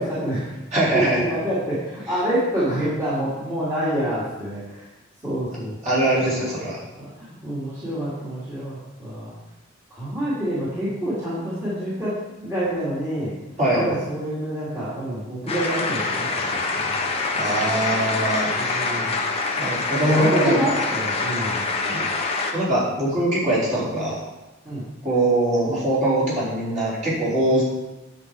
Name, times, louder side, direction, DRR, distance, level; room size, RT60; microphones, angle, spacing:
voice 1, 0.0-0.5 0.9-4.9 5.2-5.8 6.3-6.7 7.0-9.3 9.9-13.3 13.7-17.1 18.6-19.2 20.0-21.6 24.6-24.8 27.5-27.6, equal, 15° right, -12 dB, 2.7 m, -27 dB
voice 2, 0.7-1.2 5.8-6.8 13.6-13.8 17.4-18.9 19.6-20.8 21.8-22.0 22.5-24.2 25.0-27.6, right 1 dB, 35° right, -9 dB, 4.2 m, -22 dB
sound 1, 15.5-22.5, left 3 dB, 25° left, 1.1 m, -25 dB
9.6 x 7.7 x 4.8 m, 1.0 s
head